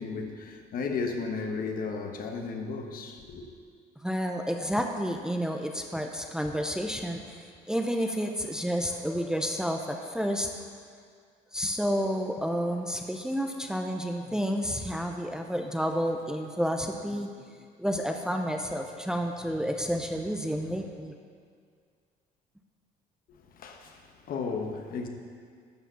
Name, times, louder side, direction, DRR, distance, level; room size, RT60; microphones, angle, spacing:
voice 1, 0.0-3.5 23.3-25.1, left 4 dB, 60° left, 4 dB, 1.2 m, -34 dB
voice 2, 4.0-10.5 11.5-17.3 17.8-21.2, equal, 5° right, 3 dB, 0.6 m, -30 dB
12.0 x 4.9 x 6.8 m, 2.1 s
cardioid pair, 110°, 17 cm